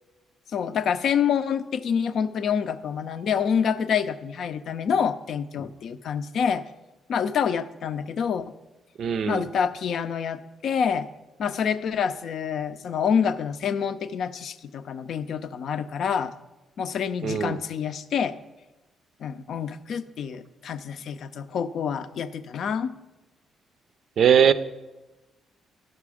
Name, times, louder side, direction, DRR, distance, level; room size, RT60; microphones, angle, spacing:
voice 1, 0.5-6.6 7.1-8.5 9.3-11.1 11.4-16.3 16.8-18.3 19.2-22.9, left 7 dB, 65° left, 11 dB, 0.5 m, -27 dB
voice 2, 9.0-9.4 17.2-17.6 24.2-24.5, right 8 dB, 60° right, 13 dB, 0.4 m, -20 dB
11.0 x 6.0 x 4.9 m, 1.1 s
cardioid pair, 90°, 0 cm